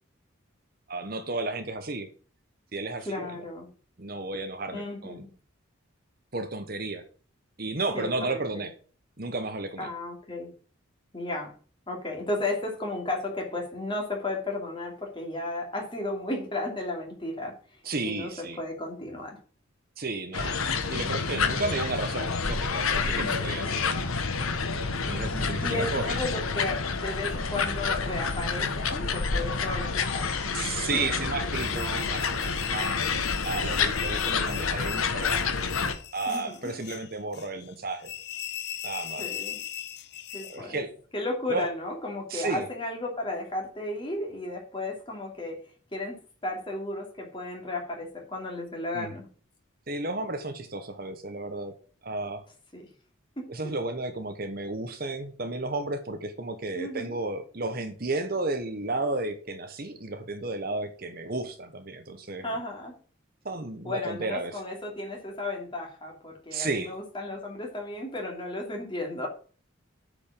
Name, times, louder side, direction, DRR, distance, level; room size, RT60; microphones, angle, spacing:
voice 1, 0.9-2.1 2.7-3.5 4.0-5.3 6.3-7.0 7.6-8.7 9.2-9.9 17.8-18.6 20.0-20.6 20.9-23.8 25.1-26.2 30.5-33.1 33.4-35.5 36.1-38.1 38.8-39.3 40.5-40.9 41.5-41.7 42.3-42.6 48.9-49.1 49.9-51.7 52.0-52.4 53.5-62.6 63.4-64.6 66.5-66.9, right 2 dB, 45° right, 8 dB, 1.0 m, -33 dB
voice 2, 3.0-3.7 4.7-5.3 7.9-8.6 9.8-10.5 11.1-11.5 11.9-17.6 18.0-19.4 23.1-23.3 25.6-30.6 30.9-31.0 33.2-33.3 33.9-34.5 36.3-36.7 39.2-39.6 40.3-40.8 41.1-45.6 45.9-46.2 46.4-49.2 52.7-52.8 53.4-53.5 56.7-57.2 62.4-62.9 63.8-69.3, left 2 dB, 25° left, 0 dB, 2.7 m, -34 dB
sound 1, 20.3-35.9, left 5 dB, 85° left, 1.3 m, -28 dB
sound 2, 31.5-40.6, left 11 dB, 50° left, 0.6 m, -39 dB
8.6 x 5.2 x 7.3 m, 0.41 s
head